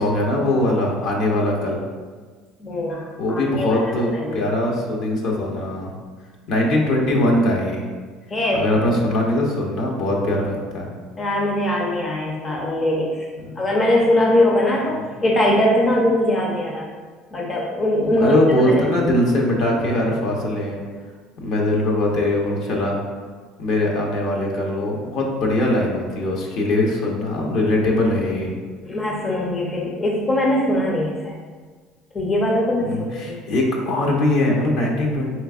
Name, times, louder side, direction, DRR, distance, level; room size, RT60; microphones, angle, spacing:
voice 1, 0.0-1.8 3.2-5.9 6.5-7.8 8.5-10.9 13.4-13.6 14.9-15.1 18.0-20.8 21.4-23.0 23.6-28.5 32.8-35.3, left 1 dB, 65° left, -1 dB, 0.8 m, -21 dB
voice 2, 2.6-3.8 4.1-4.4 8.3-8.6 11.2-13.3 13.6-16.9 17.3-19.1 28.8-31.4 32.1-33.4, left 1 dB, 30° left, -1 dB, 0.6 m, -21 dB
4.5 x 3.3 x 2.4 m, 1.5 s
supercardioid pair, 90°, 0 cm